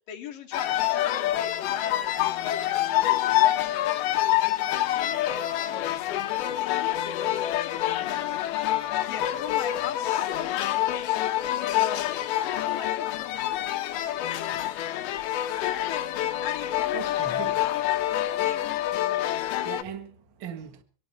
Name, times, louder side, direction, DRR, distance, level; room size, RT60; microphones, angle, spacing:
voice 1, 0.1-3.9 4.2-6.2 6.6-8.5 9.1-10.8 11.6-12.0 12.4-15.1 15.6-16.0 16.4-17.9 18.4-18.8, left 8 dB, 55° left, 3.4 m, -40 dB
sound 1, 0.5-19.8, left 13 dB, 75° left, 2.6 m, -27 dB
voice 2, 16.9-17.6 19.4-20.8, right 7 dB, 90° right, 1.0 m, -39 dB
24.0 x 12.0 x 4.4 m
omnidirectional pair, 5.0 m